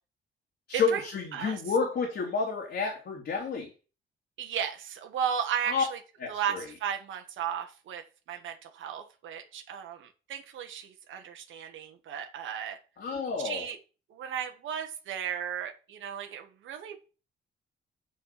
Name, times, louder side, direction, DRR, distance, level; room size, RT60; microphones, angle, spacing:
voice 1, 0.7-3.7 5.6-5.8 6.2-6.7 13.0-13.7, left 5 dB, 60° left, 1 dB, 2.5 m, -30 dB
voice 2, 4.4-6.0 6.3-8.0 8.3-12.8 13.4-13.8 14.1-17.0, right 8 dB, 80° right, 5 dB, 1.5 m, -35 dB
7.4 x 5.8 x 5.9 m, 0.34 s
cardioid pair, 90°, 20 cm